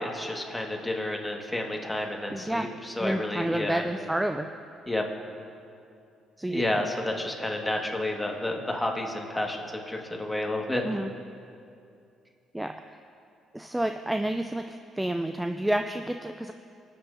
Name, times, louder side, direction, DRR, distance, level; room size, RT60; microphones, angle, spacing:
voice 1, 0.0-3.8 4.9-5.0 6.5-11.0, left 1 dB, 10° left, 0 dB, 1.7 m, -30 dB
voice 2, 2.3-2.7 3.0-4.5 6.4-6.6 10.8-11.1 12.5-13.0 13.5-16.5, right 1 dB, 10° right, 7 dB, 0.4 m, -29 dB
23.0 x 8.0 x 2.7 m, 2.5 s
supercardioid pair, 65°, 0 cm